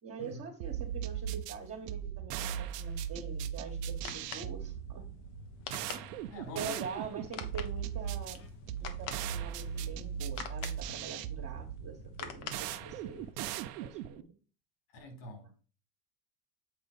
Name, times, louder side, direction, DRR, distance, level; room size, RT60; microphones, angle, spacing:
voice 1, 0.0-5.1 5.9-6.1 6.5-8.4 8.8-14.2, right 5 dB, 30° right, 1.7 m, -44 dB
sound 1, 0.6-14.2, right 9 dB, 75° right, 0.8 m, -38 dB
sound 2, 3.7-13.3, left 7 dB, 60° left, 1.4 m, -47 dB
voice 2, 6.3-6.8 14.9-15.5, left 2 dB, 80° left, 4.5 m, -45 dB
8.2 x 4.0 x 5.0 m
supercardioid pair, 115°, 48 cm